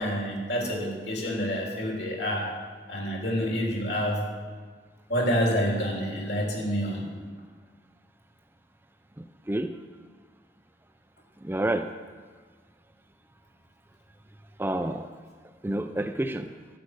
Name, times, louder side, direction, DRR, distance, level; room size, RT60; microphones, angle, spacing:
voice 1, 0.0-2.5 2.9-4.3 5.1-7.1, equal, 65° left, -1 dB, 3.3 m, -28 dB
voice 2, 9.2-9.8 11.4-11.9 14.6-15.1 15.6-16.5, right 1 dB, 10° right, 8 dB, 0.4 m, -29 dB
12.0 x 9.6 x 6.5 m, 1.5 s
head